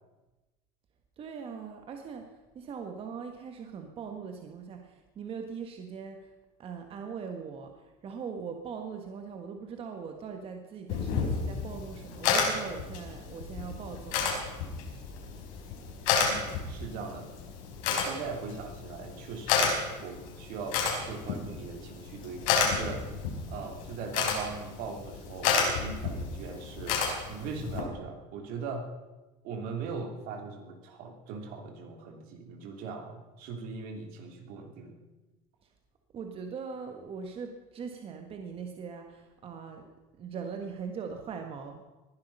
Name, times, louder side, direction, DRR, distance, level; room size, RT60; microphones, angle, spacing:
voice 1, 1.2-6.3 6.6-7.7 8.0-14.3 36.1-39.9 40.2-41.8, right 6 dB, 35° right, 4 dB, 1.6 m, -40 dB
sound 1, 10.9-27.8, left 5 dB, 85° left, 4.6 m, -31 dB
voice 2, 16.2-17.3 17.9-23.1 23.5-27.0 27.3-28.9 29.4-35.0, right 4 dB, 65° right, 3 dB, 3.0 m, -40 dB
20.0 x 11.5 x 5.5 m, 1.1 s
cardioid pair, 135°, 16 cm